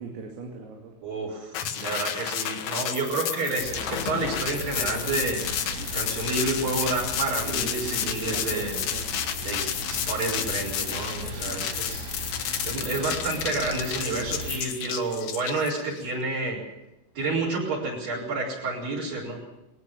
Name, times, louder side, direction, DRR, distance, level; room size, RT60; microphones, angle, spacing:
voice 1, 0.0-0.9 7.5-9.1, right 4 dB, 85° right, 0 dB, 5.2 m, -39 dB
voice 2, 1.0-5.5 5.9-8.8 9.4-12.1 12.6-16.6 17.2-19.4, right 3 dB, 45° right, 0 dB, 5.9 m, -29 dB
sound 1, 1.5-16.0, left 9 dB, 65° left, 2.9 m, -31 dB
sound 2, 3.6-14.6, right 1 dB, 65° right, 7.0 m, -37 dB
20.5 x 19.0 x 7.0 m, 0.92 s
omnidirectional pair, 5.8 m